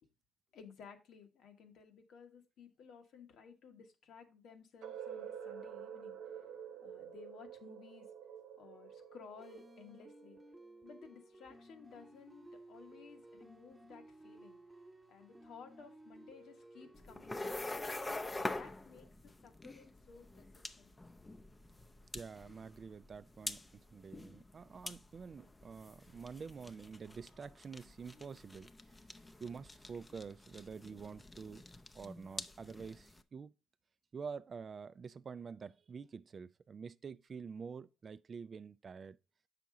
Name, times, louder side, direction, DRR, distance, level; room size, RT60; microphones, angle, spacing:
voice 1, 0.5-6.2 6.8-8.1 8.6-14.6 15.1-20.9, left 6 dB, 75° left, 1.3 m, -57 dB
sound 1, 4.8-10.7, right 8 dB, 85° right, 0.9 m, -49 dB
sound 2, 9.4-18.3, right 1 dB, 10° right, 1.0 m, -57 dB
sound 3, 16.9-33.2, left 2 dB, 20° left, 0.6 m, -46 dB
voice 2, 22.1-28.7 29.4-31.7 31.9-33.5 34.1-39.2, right 5 dB, 45° right, 0.4 m, -48 dB
7.2 x 5.8 x 3.8 m
cardioid pair, 90°, 0 cm